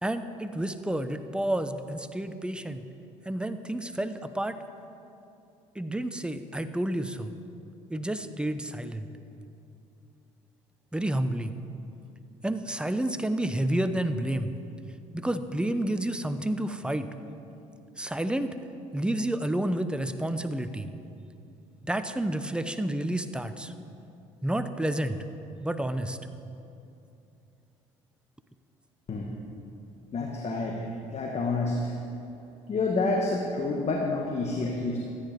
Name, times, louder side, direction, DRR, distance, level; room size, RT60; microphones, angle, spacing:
voice 1, 0.0-2.8 3.2-4.6 5.7-7.3 7.9-9.1 10.9-11.5 12.4-14.5 15.1-17.1 18.0-18.6 18.9-20.9 21.8-23.7 24.4-25.2 25.6-26.2 30.9-31.0, right 1 dB, 5° right, 10 dB, 0.8 m, -30 dB
voice 2, 30.1-30.8 31.1-31.8 32.7-35.0, left 3 dB, 40° left, 0 dB, 1.5 m, -28 dB
13.5 x 9.7 x 5.2 m, 2.7 s
hypercardioid pair, 65°, 16 cm